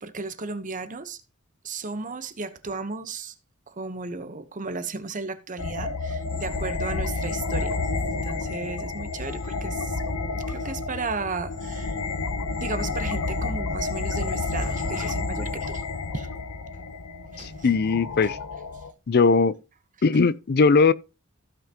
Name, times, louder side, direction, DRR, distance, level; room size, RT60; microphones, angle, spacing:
voice 1, 0.0-1.2 1.6-3.3 3.7-7.8 8.1-10.0 10.3-12.0 12.5-15.8 16.1-16.3 17.3-17.7, right 3 dB, 35° right, 1.0 m, -34 dB
sound 1, 5.6-18.9, left 3 dB, 80° left, 0.9 m, -30 dB
voice 2, 17.4-18.4 19.1-19.6 20.0-20.9, left 4 dB, 45° left, 0.5 m, -19 dB
15.5 x 5.8 x 2.9 m
head